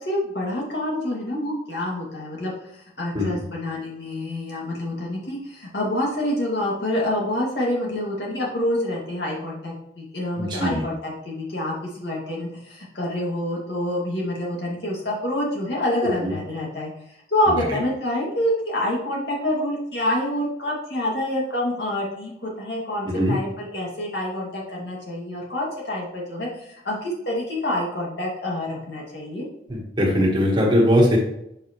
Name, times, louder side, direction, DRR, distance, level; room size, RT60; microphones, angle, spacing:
voice 1, 0.1-2.5 3.0-16.9 17.3-29.5, left 1 dB, 70° left, -3 dB, 2.3 m, -27 dB
voice 2, 10.4-10.8 16.2-16.3 23.1-23.4 29.7-31.2, equal, 25° right, -2 dB, 1.5 m, -20 dB
7.7 x 5.0 x 3.1 m, 0.78 s
head